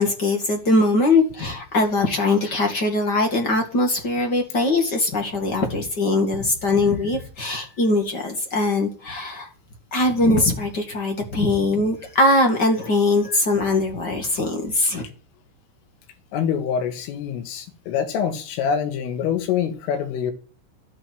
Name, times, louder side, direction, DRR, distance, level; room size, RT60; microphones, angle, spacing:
voice 1, 0.0-9.5 9.9-15.0, left 2 dB, 45° left, 3 dB, 1.3 m, -21 dB
voice 2, 16.3-20.3, left 7 dB, 90° left, 7 dB, 4.6 m, -25 dB
12.5 x 11.0 x 7.8 m, 0.38 s
omnidirectional pair, 5.6 m